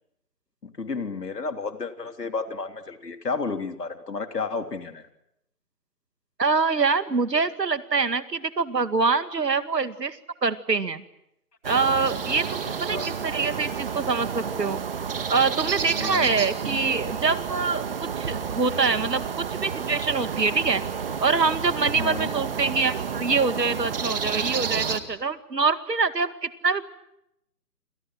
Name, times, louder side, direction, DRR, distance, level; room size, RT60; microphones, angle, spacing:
voice 1, 0.6-5.1 12.9-13.1 16.0-16.3 22.0-22.3, left 4 dB, 75° left, 7 dB, 3.5 m, -32 dB
voice 2, 6.4-11.0 11.6-14.8 15.3-17.9 18.2-20.8 21.2-26.8, right 4 dB, 85° right, 12 dB, 2.2 m, -25 dB
sound 1, 11.6-25.0, right 6 dB, 35° right, 2.1 m, -30 dB
30.0 x 26.0 x 6.4 m, 0.81 s
figure-of-eight pair, 160°, 48 cm